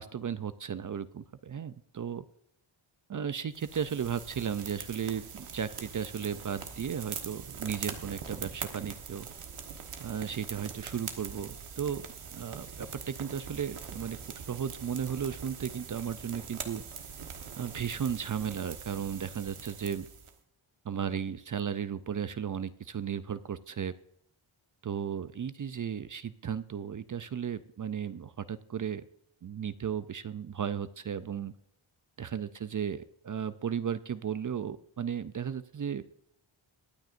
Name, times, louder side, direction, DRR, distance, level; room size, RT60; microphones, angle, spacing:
voice 1, 0.0-2.2 3.1-9.3 10.0-12.0 12.3-14.2 14.5-16.8 17.6-20.1 20.8-23.9 24.8-29.0 29.4-31.5 32.2-36.1, right 8 dB, 40° right, 13 dB, 0.5 m, -35 dB
sound 1, 3.5-20.3, right 6 dB, 80° right, 1.4 m, -43 dB
22.5 x 9.1 x 2.5 m, 0.72 s
wide cardioid pair, 125°, 49 cm